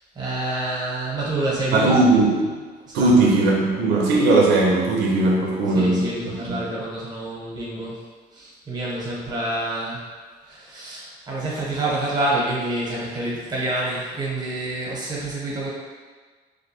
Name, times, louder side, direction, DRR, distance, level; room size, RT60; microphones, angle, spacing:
voice 1, 0.1-2.0 2.9-3.3 5.7-8.0 8.3-10.0 10.5-15.7, right 2 dB, 25° right, -5 dB, 0.8 m, -27 dB
voice 2, 1.7-2.6 2.9-6.6, right 2 dB, 90° right, -2 dB, 0.4 m, -19 dB
2.4 x 2.1 x 2.8 m, 1.5 s
cardioid pair, 110°, 17 cm